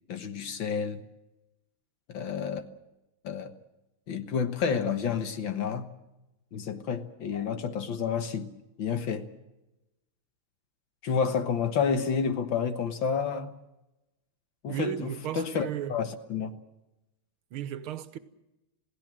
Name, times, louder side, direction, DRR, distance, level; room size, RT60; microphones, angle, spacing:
voice 1, 0.1-1.0 2.1-2.6 3.2-3.5 4.1-5.9 6.5-8.5 8.8-9.3 11.0-13.5 14.6-16.5, left 6 dB, 65° left, 2.0 m, -30 dB
voice 2, 14.7-16.0 17.5-18.2, right 10 dB, 80° right, 1.9 m, -35 dB
27.5 x 17.0 x 7.6 m
omnidirectional pair, 2.3 m